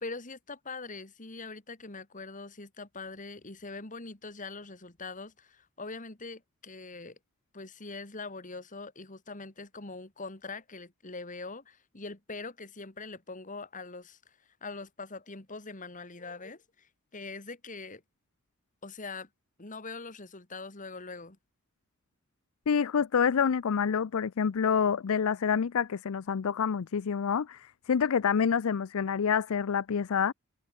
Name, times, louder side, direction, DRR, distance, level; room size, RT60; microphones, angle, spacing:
voice 1, 0.0-7.2 7.5-18.0 18.8-19.3 19.6-21.4, left 3 dB, 40° left, 2.3 m, -43 dB
voice 2, 22.7-27.6 27.9-30.3, left 7 dB, 90° left, 0.5 m, -27 dB
head